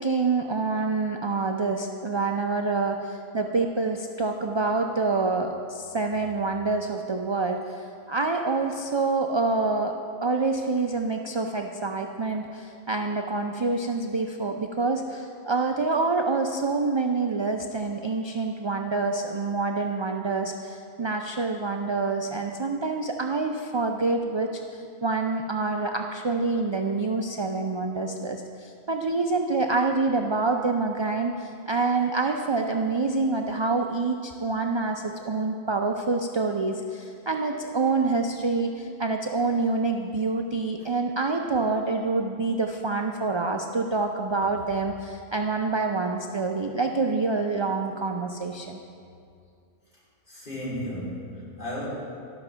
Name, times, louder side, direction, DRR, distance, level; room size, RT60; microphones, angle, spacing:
voice 1, 0.0-9.9 10.2-48.8, right 3 dB, 45° right, 3 dB, 0.3 m, -27 dB
voice 2, 50.3-51.9, equal, 50° left, -8 dB, 3.4 m, -34 dB
12.5 x 6.0 x 6.8 m, 2.4 s
omnidirectional pair, 1.1 m